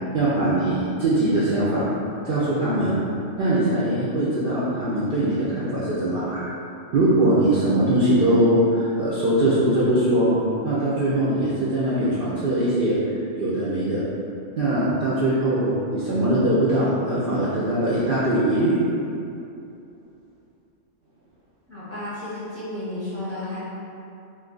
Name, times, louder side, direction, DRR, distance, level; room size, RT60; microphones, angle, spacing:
voice 1, 0.1-1.9 2.2-3.0 3.4-6.4 6.9-10.4 10.6-13.0 13.4-14.0 14.6-18.8, right 1 dB, 60° right, -9 dB, 0.6 m, -21 dB
voice 2, 21.7-23.6, left 1 dB, 15° left, -11 dB, 0.7 m, -32 dB
2.5 x 2.4 x 3.7 m, 2.7 s
omnidirectional pair, 1.3 m